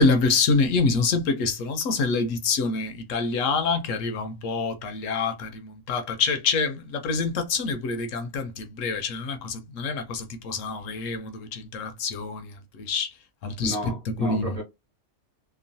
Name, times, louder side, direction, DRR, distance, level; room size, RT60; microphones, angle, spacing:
voice 1, 0.0-13.1 13.4-14.6, left 4 dB, 75° left, 0.9 m, -26 dB
voice 2, 13.6-14.6, left 1 dB, 30° right, 0.9 m, -32 dB
2.9 x 2.2 x 2.6 m
omnidirectional pair, 1.4 m